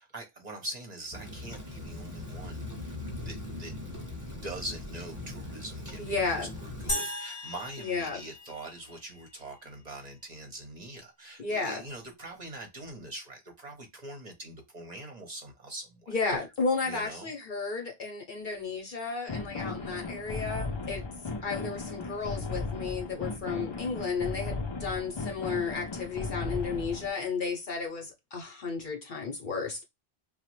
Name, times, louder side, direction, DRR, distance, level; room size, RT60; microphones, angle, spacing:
voice 1, 0.0-2.9 3.2-3.7 4.4-16.1 16.8-17.3, right 1 dB, 45° right, 0.8 m, -43 dB
Rain, 1.1-7.0, left 2 dB, 20° right, 1.0 m, -40 dB
voice 2, 6.0-6.6 7.8-8.2 11.4-11.8 16.1-21.0 21.4-29.8, left 4 dB, 55° left, 0.8 m, -33 dB
sound 1, 6.9-9.3, left 1 dB, 15° left, 0.8 m, -37 dB
sound 2, 19.3-27.1, left 3 dB, 40° left, 0.4 m, -36 dB
3.0 x 2.1 x 2.9 m
omnidirectional pair, 1.0 m